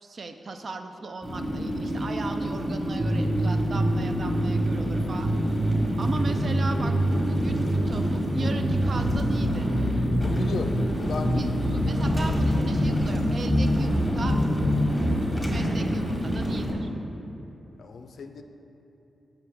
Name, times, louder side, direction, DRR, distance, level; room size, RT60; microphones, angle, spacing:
voice 1, 0.0-5.3 6.0-9.7 11.3-14.4 15.4-16.9, right 3 dB, 45° right, 7 dB, 0.4 m, -36 dB
sound 1, 1.2-16.7, equal, 5° left, 1.2 m, -28 dB
sound 2, 3.0-4.8 5.2-7.8 8.2-10.8 11.2-13.8 14.2-14.9, equal, 25° right, 1.1 m, -26 dB
voice 2, 10.1-11.5 14.8-15.1 17.8-18.4, left 4 dB, 70° left, 6 dB, 0.4 m, -36 dB
6.9 x 5.8 x 3.4 m, 3.0 s
wide cardioid pair, 115°, 0 cm